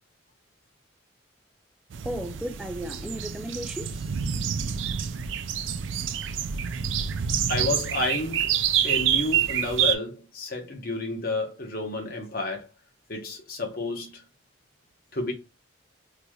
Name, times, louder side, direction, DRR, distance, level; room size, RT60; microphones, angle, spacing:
sound 1, 1.9-9.9, right 9 dB, 70° right, 0.4 m, -27 dB
voice 1, 2.0-4.1, equal, 5° right, 0.4 m, -35 dB
voice 2, 7.5-8.5 8.8-12.7 13.1-14.2 15.1-15.3, left 2 dB, 50° left, 0.9 m, -30 dB
3.9 x 3.1 x 2.3 m
head